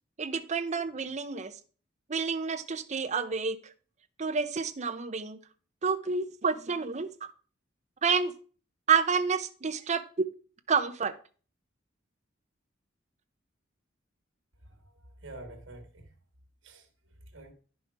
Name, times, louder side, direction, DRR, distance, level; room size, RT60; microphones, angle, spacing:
voice 1, 0.2-1.5 2.1-3.6 4.2-5.4 5.8-7.1 8.0-8.3 8.9-10.3 10.7-11.1, right 5 dB, 35° right, 0.6 m, -29 dB
voice 2, 14.7-16.0 16.6-16.9 17.3-17.5, right 2 dB, 85° right, 1.6 m, -47 dB
10.0 x 5.6 x 4.6 m
head